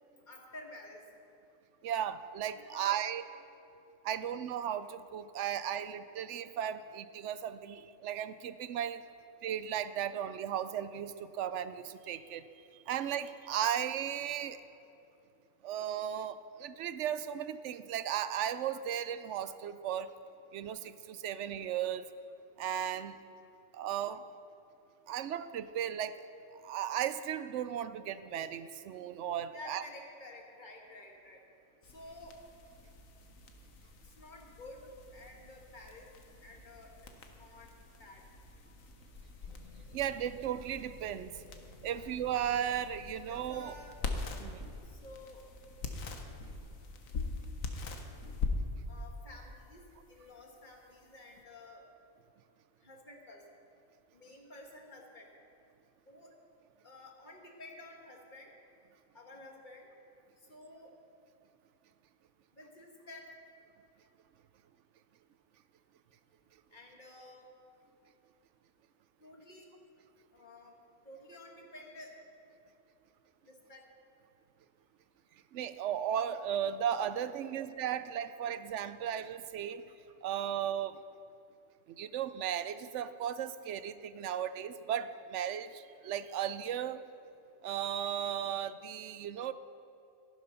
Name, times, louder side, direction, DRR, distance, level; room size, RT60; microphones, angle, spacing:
voice 1, 0.3-1.0 2.5-3.0 29.5-31.4 31.8-32.4 34.0-34.8 35.1-36.1 36.4-36.9 37.3-37.7 38.0-38.2 41.8-42.0 43.3-44.2 44.8-45.5 48.9-51.9 52.8-53.4 54.1-55.3 56.1-56.3 56.8-58.5 59.1-59.9 60.5-60.9 62.6-63.3 66.7-67.5 69.2-69.7 70.3-70.8 71.0-72.1 73.4-73.8, left 2 dB, 35° left, 1 dB, 1.8 m, -51 dB
voice 2, 1.8-3.2 4.0-9.0 9.4-12.4 12.9-14.6 15.6-20.1 20.5-22.1 22.6-23.2 23.7-24.2 25.1-26.2 26.6-29.8 39.9-41.3 41.8-43.7 44.4-44.7 75.5-79.8 80.2-81.0 82.0-87.0 87.6-89.5, right 9 dB, 70° right, 13 dB, 0.8 m, -35 dB
sound 1, 31.8-51.4, left 3 dB, 90° left, 1.5 m, -43 dB
14.0 x 11.0 x 5.7 m, 2.7 s
omnidirectional pair, 1.4 m